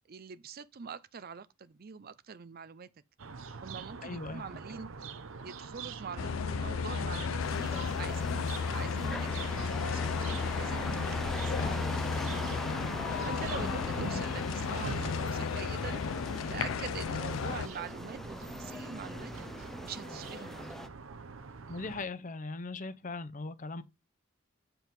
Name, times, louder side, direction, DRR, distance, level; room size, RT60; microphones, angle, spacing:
voice 1, 0.0-2.9 3.6-4.9 5.4-10.1 10.6-12.6 13.2-16.0 16.5-19.3 19.8-20.7, right 6 dB, 50° right, 0.5 m, -44 dB
sound 1, 3.2-22.1, right 4 dB, 80° right, 0.8 m, -45 dB
voice 2, 4.0-4.4 13.6-14.2 21.7-23.8, left 3 dB, 40° left, 0.7 m, -39 dB
sound 2, 6.2-17.7, left 5 dB, 85° left, 0.4 m, -33 dB
sound 3, 7.4-20.9, equal, ahead, 0.4 m, -42 dB
7.8 x 4.6 x 5.3 m
head